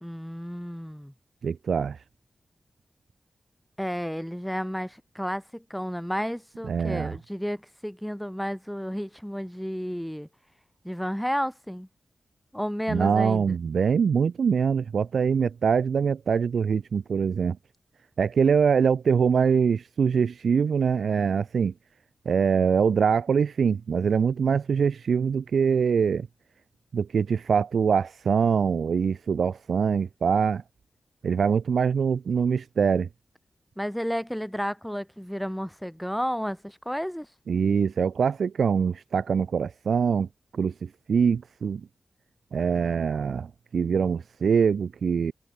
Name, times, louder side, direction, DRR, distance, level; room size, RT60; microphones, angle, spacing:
voice 1, 0.0-1.1 3.8-10.3 10.8-11.9 12.5-13.6 33.8-37.3, equal, ahead, 0.6 m, -32 dB
voice 2, 1.4-2.0 6.7-7.1 12.9-17.6 18.2-21.7 22.2-26.3 26.9-30.6 31.2-33.1 37.5-40.3 40.5-41.9 42.5-45.3, right 6 dB, 80° right, 1.0 m, -24 dB
wide cardioid pair, 130°, 0 cm